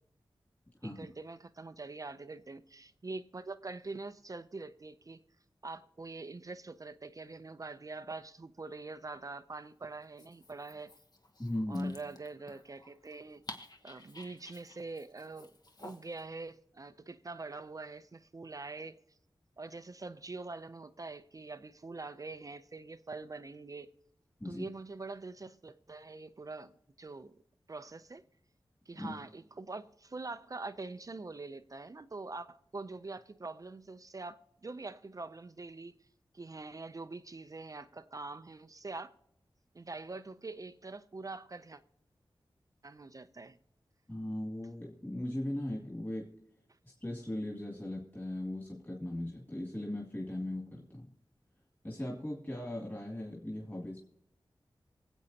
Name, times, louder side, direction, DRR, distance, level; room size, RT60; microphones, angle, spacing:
voice 1, 0.8-5.2 5.6-10.9 11.7-13.4 13.8-15.5 15.8-19.0 19.6-23.9 24.4-26.7 27.0-27.4 27.7-28.2 28.9-35.9 36.3-39.1 39.7-41.8 42.8-43.6, right 3 dB, 40° right, 11 dB, 0.5 m, -44 dB
Dog, 10.0-16.2, left 2 dB, 45° left, 1.1 m, -53 dB
voice 2, 11.4-11.9 24.4-24.7 29.0-29.2 44.1-46.3 46.8-51.1 51.8-54.0, left 1 dB, 20° left, -2 dB, 2.4 m, -38 dB
24.5 x 8.2 x 2.8 m, 0.74 s
wide cardioid pair, 90°, 9 cm